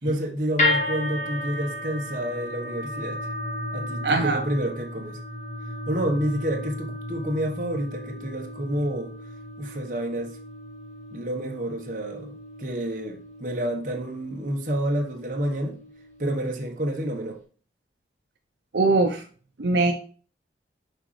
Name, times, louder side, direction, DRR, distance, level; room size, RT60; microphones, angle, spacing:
voice 1, 0.0-3.3 3.7-5.2 5.9-9.1 9.6-10.3 11.1-15.8 16.2-17.4, right 1 dB, 45° right, 1.2 m, -29 dB
sound 1, 0.6-16.8, left 2 dB, 40° left, 1.8 m, -34 dB
voice 2, 4.0-4.4 18.7-19.2 19.6-19.9, right 3 dB, 75° right, 0.7 m, -21 dB
6.5 x 5.0 x 3.2 m
head